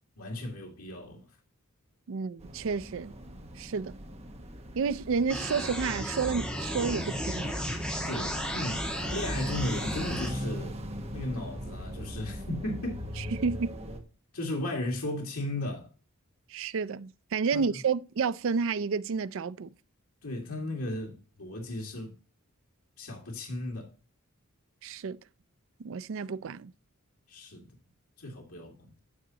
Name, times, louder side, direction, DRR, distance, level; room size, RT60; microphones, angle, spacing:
voice 1, 0.2-1.3 8.0-10.8 11.1-13.3 14.3-15.9 17.5-17.7 20.2-22.1 23.0-23.9 27.3-27.7 28.2-28.9, left 1 dB, 85° left, 2.2 m, -35 dB
voice 2, 2.1-3.2 3.6-3.9 4.7-7.6 13.2-13.8 16.5-19.7 24.8-25.2 25.8-26.7, right 5 dB, 60° right, 0.4 m, -30 dB
sound 1, 2.4-14.0, equal, 30° right, 1.3 m, -39 dB
sound 2, 5.3-10.3, equal, 5° left, 1.8 m, -34 dB
9.6 x 7.4 x 2.9 m
head